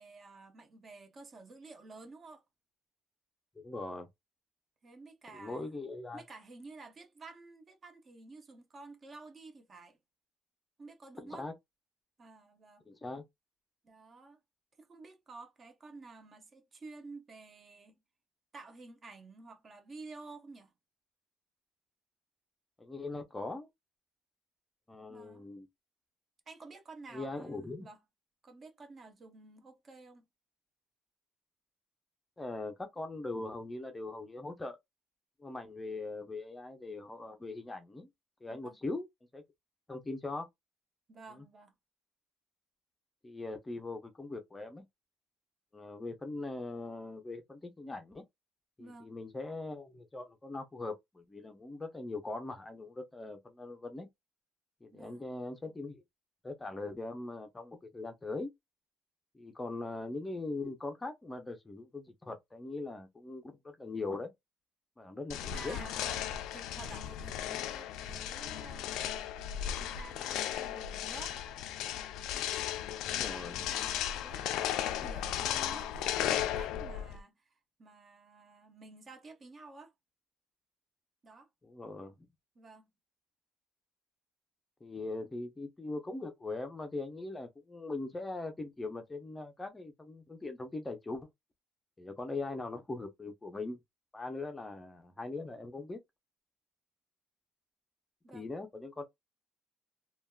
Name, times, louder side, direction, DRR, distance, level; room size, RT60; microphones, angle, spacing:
voice 1, 0.0-2.4 4.8-5.7 6.1-10.0 10.8-11.5 12.2-12.9 13.8-14.4 14.8-18.0 18.5-20.7 25.1-25.5 26.5-28.0 28.4-30.2 38.5-38.8 41.1-41.7 48.8-49.1 54.9-55.3 65.5-66.3 66.5-69.3 69.8-71.4 73.1-79.9 81.2-81.5 82.6-82.9 85.2-85.3 98.2-98.5, right 3 dB, 30° right, 0.6 m, -51 dB
voice 2, 3.6-4.1 5.3-6.2 11.2-11.5 12.9-13.2 22.8-23.7 24.9-25.7 27.1-27.9 32.4-34.8 35.4-38.1 38.4-39.1 39.3-39.4 39.9-40.5 43.2-44.8 45.7-48.2 48.8-54.1 54.8-56.0 56.4-58.5 59.3-64.3 65.0-65.8 73.0-73.7 81.6-82.1 84.8-91.3 92.0-93.8 94.1-96.0 98.3-99.0, left 2 dB, 15° left, 0.5 m, -41 dB
sound 1, 65.3-77.2, left 11 dB, 85° left, 0.3 m, -36 dB
3.3 x 2.2 x 2.2 m
cardioid pair, 155°, 0 cm